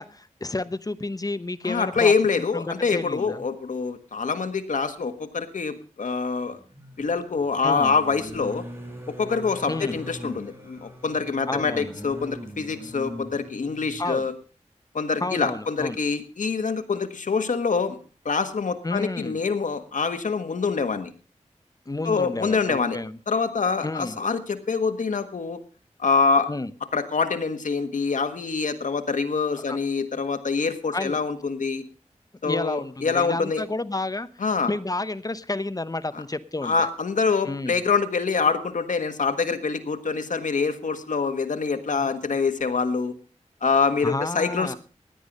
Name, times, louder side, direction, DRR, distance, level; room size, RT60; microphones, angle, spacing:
voice 1, 0.0-2.1 2.5-3.4 7.6-7.9 9.7-10.0 11.5-11.9 14.0-14.3 15.2-16.0 18.8-19.4 21.9-23.2 23.8-24.2 26.5-26.7 29.7-29.8 30.9-31.2 32.4-34.3 34.7-36.7 37.4-37.8 42.0-42.1 44.0-44.7, left 2 dB, 30° left, 15 dB, 0.9 m, -30 dB
voice 2, 1.6-6.6 7.0-8.6 9.1-14.3 14.9-18.0 18.2-21.1 22.0-23.0 23.3-25.6 26.0-26.5 26.9-31.8 32.4-33.6 34.4-34.7 36.1-36.2 36.6-43.1 43.6-44.8, left 4 dB, 90° left, 8 dB, 1.5 m, -25 dB
sound 1, 4.2-4.3 6.5-14.1 15.3-15.5 15.8-16.0, equal, 20° right, 6.5 m, -41 dB
16.5 x 10.0 x 5.3 m, 0.37 s
wide cardioid pair, 65°, 13 cm